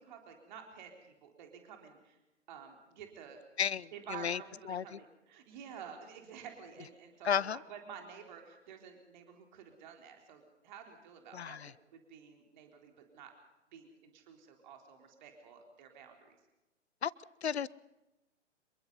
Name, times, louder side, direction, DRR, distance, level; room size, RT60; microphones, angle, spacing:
voice 1, 0.0-2.2 2.5-3.4 3.9-13.3 13.7-16.4, right 7 dB, 40° right, 3 dB, 3.9 m, -51 dB
voice 2, 3.6-4.4 4.7-5.0 7.2-7.6 11.3-11.7 17.0-17.1 17.4-17.7, left 8 dB, 60° left, 23 dB, 0.8 m, -33 dB
27.0 x 23.0 x 5.5 m, 0.99 s
figure-of-eight pair, 120°, 36 cm